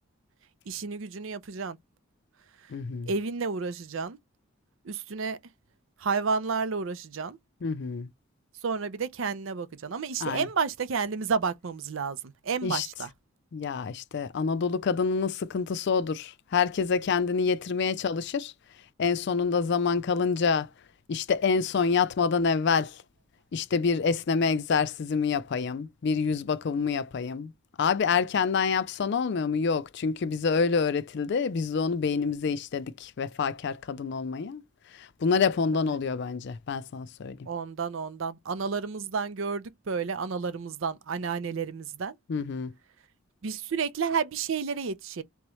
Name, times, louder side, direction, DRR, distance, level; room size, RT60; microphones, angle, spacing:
voice 1, 0.7-1.8 3.1-4.2 4.8-5.4 6.0-7.4 8.6-12.2 12.4-13.1 35.7-35.8 37.5-42.1 43.4-45.2, right 5 dB, 70° right, 0.5 m, -31 dB
voice 2, 2.7-3.1 7.6-8.1 10.2-10.5 12.6-12.9 13.5-18.5 19.0-20.7 21.1-23.0 23.5-27.5 27.8-34.6 35.0-37.4 42.3-42.7, left 5 dB, 55° left, 0.4 m, -27 dB
3.5 x 3.0 x 3.1 m
head